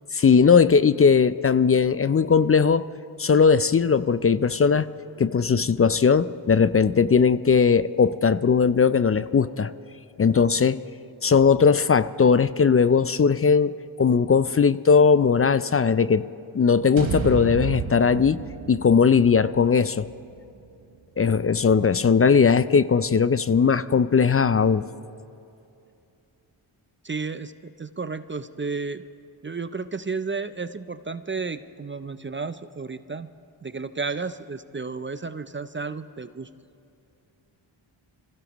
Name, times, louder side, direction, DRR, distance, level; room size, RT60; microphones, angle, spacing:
voice 1, 0.2-2.8 3.2-4.9 5.2-9.7 10.2-10.8 11.2-16.2 16.5-18.4 18.7-20.1 21.2-24.8, left 6 dB, 30° left, 15 dB, 0.4 m, -19 dB
sound 1, 17.0-21.2, right 7 dB, 65° right, 1.2 m, -33 dB
voice 2, 27.0-29.0 29.4-33.3 33.6-36.5, right 4 dB, 25° right, 12 dB, 0.5 m, -32 dB
25.0 x 16.0 x 3.0 m, 2.6 s
cardioid pair, 55°, 50 cm